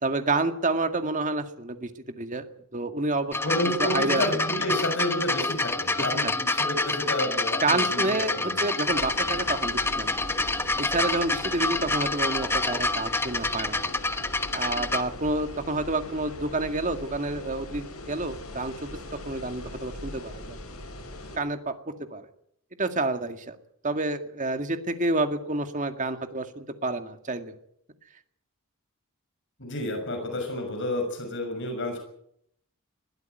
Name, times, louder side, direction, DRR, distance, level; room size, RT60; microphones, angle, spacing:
voice 1, 0.0-2.5 2.7-3.4 3.8-4.3 6.0-6.4 7.6-10.3 10.8-13.9 14.5-20.6 21.4-22.3 22.8-23.6 23.8-27.5, right 2 dB, 35° right, 7 dB, 2.1 m, -29 dB
sound 1, 3.3-15.0 15.9-16.0, left 2 dB, 10° left, 1.1 m, -27 dB
voice 2, 3.4-8.6 29.6-32.0, left 1 dB, 55° left, 4 dB, 6.4 m, -30 dB
sound 2, 8.9-21.4, left 1 dB, 80° left, 7.8 m, -40 dB
21.5 x 15.0 x 9.3 m, 0.72 s
head